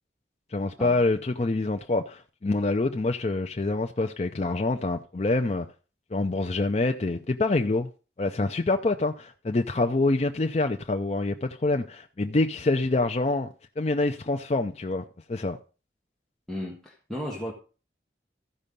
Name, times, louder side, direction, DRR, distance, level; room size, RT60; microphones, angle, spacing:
voice 1, 0.5-5.7 6.1-7.9 8.2-13.5 13.8-15.0 15.3-15.6, left 2 dB, 35° left, 0.5 m, -26 dB
voice 2, 16.5-17.5, equal, ahead, 1.5 m, -35 dB
14.0 x 5.5 x 5.3 m
head